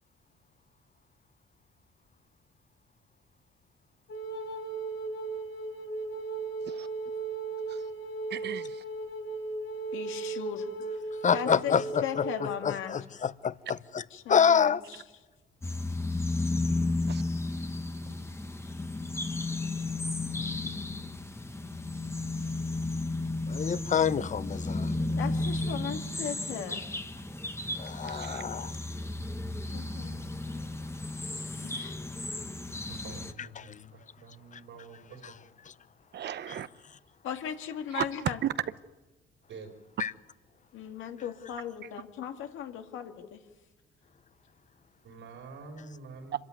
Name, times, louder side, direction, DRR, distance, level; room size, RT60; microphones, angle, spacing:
Wind instrument woodwind instrument, 4.1-12.5, right 3 dB, 65° left, 2.5 m, -36 dB
voice 1, 8.3-8.8 17.1-17.2 18.1-18.2 28.0-28.5 36.1-36.7 37.9-38.5, right 10 dB, 60° right, 0.8 m, -35 dB
voice 2, 9.9-10.7 11.3-11.8 12.0-13.0 14.1-15.0 25.2-26.8 29.7-30.1 31.6-32.0 37.2-38.4 40.7-43.4, left 9 dB, 85° left, 2.0 m, -37 dB
voice 3, 11.2-14.0 14.3-14.8 23.5-24.9 27.8-28.8 30.5-30.6 33.6-33.8 40.0-40.1, left 7 dB, 40° left, 0.8 m, -27 dB
sound 1, 15.6-33.3, left 2 dB, 15° left, 1.1 m, -33 dB
voice 4, 32.9-35.4 39.5-39.7 45.0-46.4, right 4 dB, 80° right, 5.5 m, -47 dB
26.0 x 14.0 x 9.5 m
cardioid pair, 90°, 20 cm